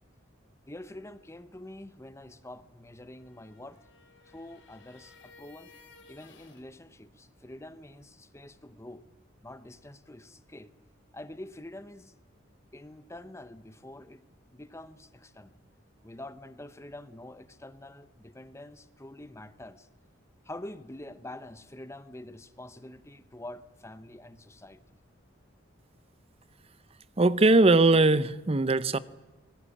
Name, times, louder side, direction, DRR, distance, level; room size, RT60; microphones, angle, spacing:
voice 1, 0.7-3.8 4.2-5.7 6.1-9.0 9.4-10.7 11.1-12.1 12.7-14.2 14.5-15.6 16.0-19.9 20.4-24.8, left 1 dB, 15° left, 13 dB, 0.9 m, -46 dB
sound 1, 3.0-6.7, left 4 dB, 65° left, 3.4 m, -57 dB
voice 2, 27.2-29.0, right 2 dB, 30° right, 16 dB, 0.7 m, -20 dB
24.5 x 19.5 x 8.5 m, 1.2 s
head